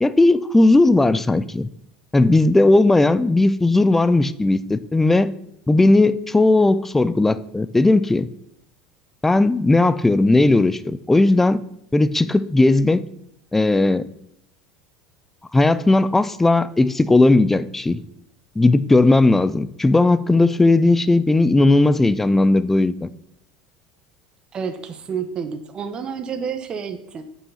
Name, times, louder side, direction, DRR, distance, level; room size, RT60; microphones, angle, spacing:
voice 1, 0.0-1.7 2.1-5.3 5.7-8.3 9.2-11.6 11.9-13.0 13.5-14.1 15.5-18.0 18.6-23.1, left 2 dB, 10° left, 0.4 m, -16 dB
voice 2, 24.5-27.2, right 6 dB, 30° right, 0.9 m, -29 dB
8.6 x 5.5 x 5.6 m
supercardioid pair, 120°, 3 cm